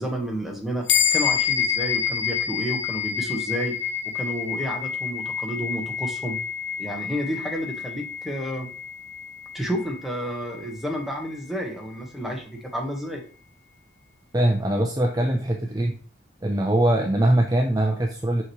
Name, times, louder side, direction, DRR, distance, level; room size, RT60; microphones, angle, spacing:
voice 1, 0.0-3.8 4.0-6.4 6.8-8.7 9.5-13.2, equal, ahead, 0 dB, 1.4 m, -31 dB
sound 1, 0.9-10.6, left 8 dB, 65° left, 1.0 m, -28 dB
voice 2, 14.3-15.9 16.4-18.4, right 1 dB, 20° right, 2 dB, 0.6 m, -22 dB
6.1 x 6.0 x 3.1 m, 0.40 s
head